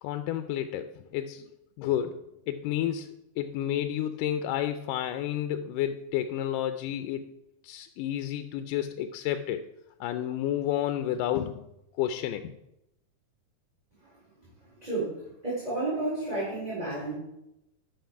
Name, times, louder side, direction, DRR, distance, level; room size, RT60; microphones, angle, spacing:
voice 1, 0.0-1.5 1.8-2.2 2.5-3.1 3.4-7.3 7.6-9.6 10.0-11.7 11.9-12.5, left 11 dB, 85° left, 9 dB, 2.2 m, -30 dB
voice 2, 14.8-17.1, right 2 dB, 10° right, -10 dB, 4.4 m, -31 dB
13.0 x 6.2 x 4.7 m, 0.85 s
omnidirectional pair, 3.7 m